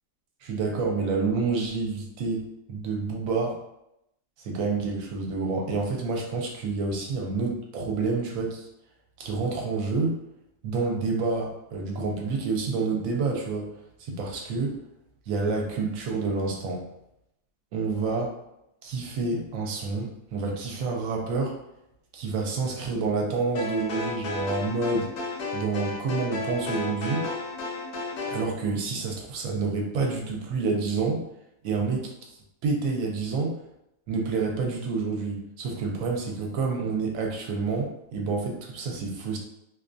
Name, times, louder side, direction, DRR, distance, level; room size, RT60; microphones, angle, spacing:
voice 1, 0.4-3.6 4.4-8.7 9.2-10.2 10.6-13.7 14.0-14.7 15.3-16.9 17.7-18.3 18.8-21.6 22.1-25.1 25.5-27.3 28.3-31.2 31.6-32.1 32.6-33.6 34.1-39.4, right 4 dB, 80° right, 1 dB, 1.0 m, -28 dB
sound 1, 23.5-28.5, left 2 dB, 65° left, 0.5 m, -33 dB
2.5 x 2.2 x 2.4 m, 0.83 s
omnidirectional pair, 1.4 m